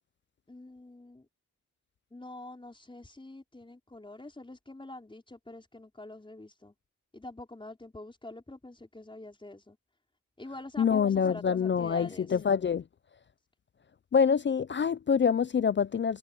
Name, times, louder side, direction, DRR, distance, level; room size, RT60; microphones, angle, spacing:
voice 1, 0.5-1.3 2.1-6.7 7.1-9.8 10.4-12.4, left 2 dB, 15° left, 5.1 m, -46 dB
voice 2, 10.8-12.8 14.1-16.2, left 6 dB, 35° left, 0.4 m, -26 dB
wide cardioid pair, 110°, 32 cm